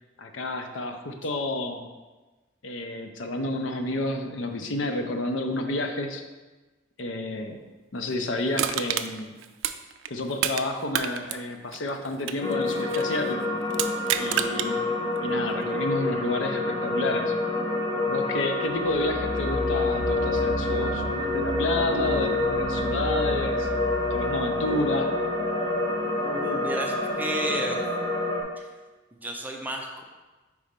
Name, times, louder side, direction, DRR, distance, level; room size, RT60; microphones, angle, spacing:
voice 1, 0.2-1.9 2.6-6.3 7.0-7.6 7.9-9.4 10.1-13.5 14.2-14.8 15.2-17.3 18.1-23.7 24.1-25.2, left 2 dB, 75° left, 5 dB, 0.6 m, -30 dB
Crushing, 8.5-10.6 10.9-13.1 13.7-14.7 15.2-15.3, right 10 dB, 80° right, 0.3 m, -29 dB
sound 1, 12.4-28.4, left 2 dB, 25° left, 0.9 m, -27 dB
sound 2, 18.7-25.3, equal, 5° left, 1.3 m, -34 dB
voice 2, 26.2-27.8 28.6-28.7 29.1-30.0, right 1 dB, 10° right, 1 dB, 0.5 m, -32 dB
4.8 x 4.2 x 5.1 m, 1.2 s
head